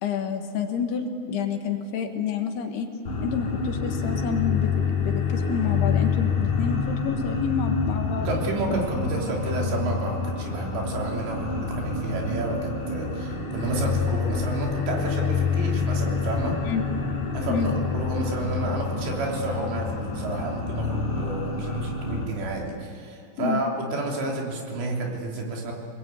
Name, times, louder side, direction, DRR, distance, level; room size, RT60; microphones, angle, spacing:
voice 1, 0.0-2.9 3.2-8.3 9.3-9.4 16.7-16.8 17.5-17.7 23.4-23.6, left 7 dB, 65° left, 5 dB, 3.3 m, -28 dB
sound 1, 3.1-22.3, left 5 dB, 45° left, 3.6 m, -27 dB
voice 2, 8.2-16.6 17.3-25.7, right 2 dB, 70° right, -1 dB, 5.4 m, -30 dB
26.5 x 21.0 x 8.4 m, 2.4 s
omnidirectional pair, 5.3 m